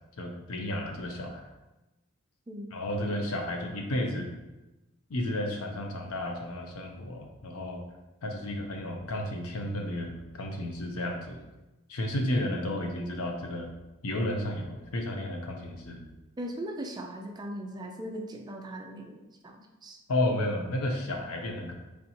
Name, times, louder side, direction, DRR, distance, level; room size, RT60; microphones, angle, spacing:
voice 1, 0.2-1.5 2.7-4.3 5.1-7.8 8.2-11.4 11.9-13.7 14.0-16.0 20.1-21.7, left 1 dB, 80° left, 2 dB, 0.6 m, -32 dB
voice 2, 16.4-19.2 19.4-20.0, right 1 dB, 20° right, 3 dB, 0.3 m, -39 dB
4.1 x 3.4 x 2.8 m, 1.1 s
head